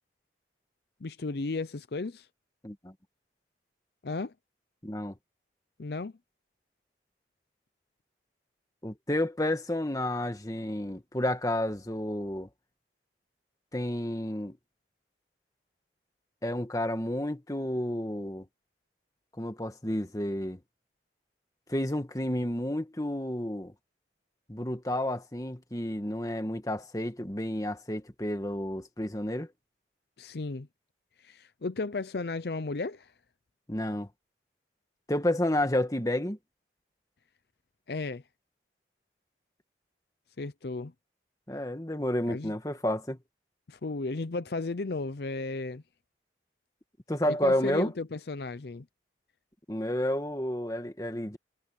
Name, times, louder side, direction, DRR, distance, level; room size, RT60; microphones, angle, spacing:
voice 1, 1.0-2.3 4.0-4.3 5.8-6.1 30.2-30.7 31.2-33.1 37.9-38.2 40.4-40.9 42.3-42.5 43.7-45.8 47.2-48.9, left 3 dB, 60° left, 0.6 m, -34 dB
voice 2, 2.6-2.9 4.8-5.2 8.8-12.5 13.7-14.6 16.4-18.4 19.4-20.6 21.7-23.7 24.5-29.5 33.7-34.1 35.1-36.4 41.5-43.2 47.1-47.9 49.7-51.4, left 1 dB, 20° left, 1.7 m, -30 dB
head